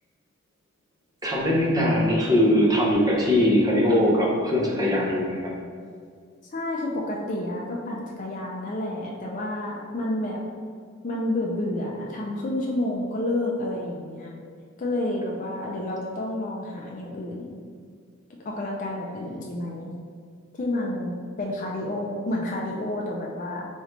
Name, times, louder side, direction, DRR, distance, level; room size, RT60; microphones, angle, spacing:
voice 1, 1.2-5.5, left 1 dB, 20° right, -5 dB, 0.8 m, -21 dB
voice 2, 6.5-10.4 11.0-14.4 14.8-17.6 18.4-19.9 20.6-23.7, left 1 dB, 40° left, -2 dB, 0.4 m, -30 dB
3.7 x 3.1 x 3.2 m, 2.1 s
head